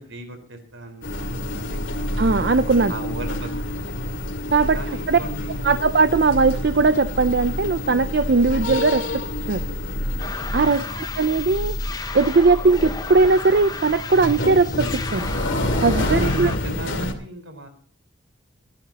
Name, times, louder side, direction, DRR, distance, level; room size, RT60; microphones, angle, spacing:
voice 1, 0.0-2.2 2.9-3.5 3.8-3.9 4.7-5.7 10.5-11.2 15.9-17.7, right 1 dB, 75° right, 6 dB, 4.5 m, -37 dB
sound 1, 1.0-17.1, left 1 dB, 75° left, 2.5 m, -28 dB
voice 2, 2.2-2.9 4.5-5.2 5.6-9.0 9.5-9.6 10.5-10.8 11.2-11.8 12.1-15.3 15.8-16.5, right 3 dB, 55° right, 11 dB, 0.5 m, -19 dB
sound 2, 10.2-16.6, left 3 dB, 20° left, 0.8 m, -35 dB
25.0 x 11.0 x 2.9 m, 0.43 s
head